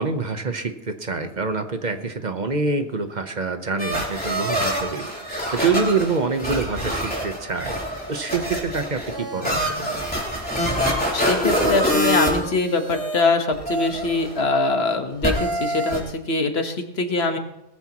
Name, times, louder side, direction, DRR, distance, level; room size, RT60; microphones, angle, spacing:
voice 1, 0.0-10.1, right 4 dB, 45° right, 8 dB, 1.0 m, -26 dB
sound 1, 3.8-13.2 13.5-14.4 15.2-16.0, equal, 10° left, 3.5 m, -25 dB
voice 2, 11.1-17.4, left 3 dB, 70° left, 6 dB, 1.5 m, -23 dB
19.5 x 14.0 x 3.0 m, 0.89 s
omnidirectional pair, 1.1 m